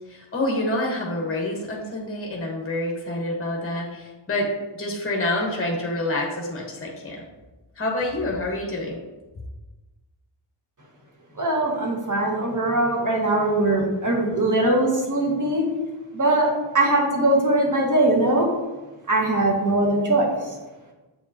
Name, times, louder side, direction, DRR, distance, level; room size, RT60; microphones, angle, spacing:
voice 1, 0.1-7.2 7.8-9.0, left 1 dB, 25° left, -1 dB, 1.1 m, -27 dB
voice 2, 11.4-15.6 16.1-18.5 19.1-20.3, right 2 dB, 40° right, -1 dB, 1.5 m, -21 dB
7.4 x 4.6 x 2.8 m, 1.1 s
cardioid pair, 65°, 49 cm